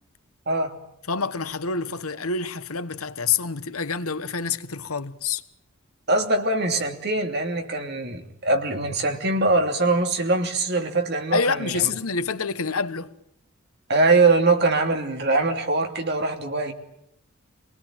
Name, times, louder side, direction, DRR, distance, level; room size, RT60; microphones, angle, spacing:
voice 1, 1.1-5.4 11.3-13.1, left 5 dB, 90° left, 1.3 m, -27 dB
voice 2, 6.1-11.9 13.9-16.7, right 3 dB, 50° right, 3.0 m, -22 dB
26.5 x 20.0 x 9.1 m
head